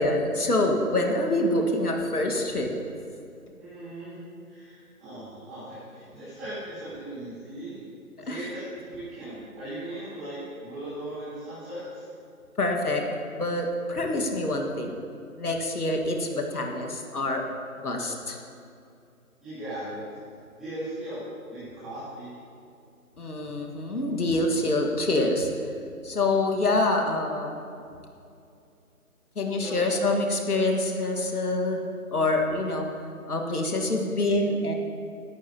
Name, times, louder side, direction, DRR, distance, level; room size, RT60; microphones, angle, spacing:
voice 1, 0.0-2.7 8.3-8.4 12.6-13.0 13.4-14.9 15.4-17.4 17.8-18.4 23.2-25.5 26.0-27.5 29.4-31.8 32.1-32.9 33.3-34.7, left 2 dB, 80° left, 2 dB, 1.8 m, -26 dB
voice 2, 3.6-7.8 8.2-12.0 19.4-20.0 20.5-22.4 29.6-30.1, right 1 dB, ahead, -24 dB, 2.6 m, -38 dB
17.0 x 11.0 x 2.9 m, 2.6 s
figure-of-eight pair, 180°, 44 cm